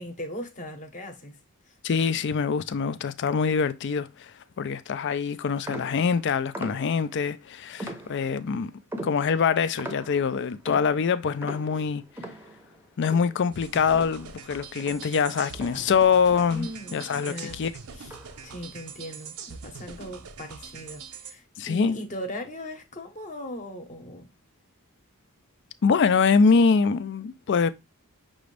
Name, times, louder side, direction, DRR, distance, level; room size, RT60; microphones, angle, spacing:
voice 1, 0.0-1.4 1.7-1.8 11.7-11.8 16.5-17.6 17.9-18.1 18.4-24.3, equal, 35° left, 0.9 m, -39 dB
voice 2, 1.8-8.7 9.0-12.0 13.0-17.7 21.6-22.0 25.8-27.7, left 5 dB, 55° left, 0.4 m, -24 dB
sound 1, 5.7-7.2 7.8-8.5 8.9-14.5 14.8-16.8 17.2-17.5 18.0-18.5, right 1 dB, 10° right, 0.7 m, -42 dB
sound 2, 13.5-21.3, right 6 dB, 80° right, 0.6 m, -43 dB
6.0 x 2.5 x 3.2 m
head